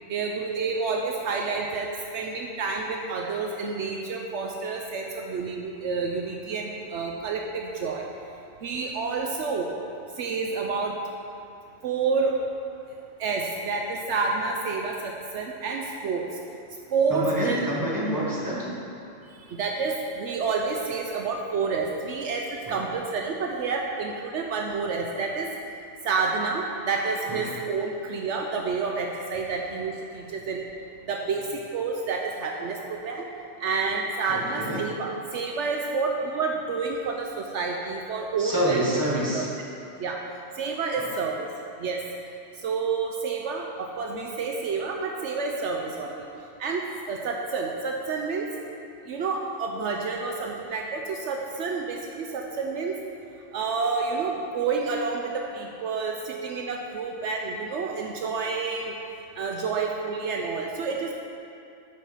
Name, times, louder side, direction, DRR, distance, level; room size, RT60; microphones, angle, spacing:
voice 1, 0.1-8.1 8.6-9.7 10.2-11.0 11.8-12.4 13.2-16.3 16.9-17.6 19.4-25.5 26.0-30.7 31.0-33.2 33.6-39.0 39.3-39.5 40.0-40.2 40.6-41.5 41.8-42.0 42.6-46.3 46.6-48.5 49.0-53.0 53.5-58.9 59.3-61.1, right 4 dB, 70° right, 1 dB, 0.9 m, -29 dB
voice 2, 17.1-18.8 22.7-22.8 27.3-27.5 34.3-34.9 38.4-39.5 41.0-41.1, equal, 15° right, -5 dB, 1.3 m, -27 dB
9.0 x 4.4 x 5.7 m, 2.6 s
omnidirectional pair, 1.3 m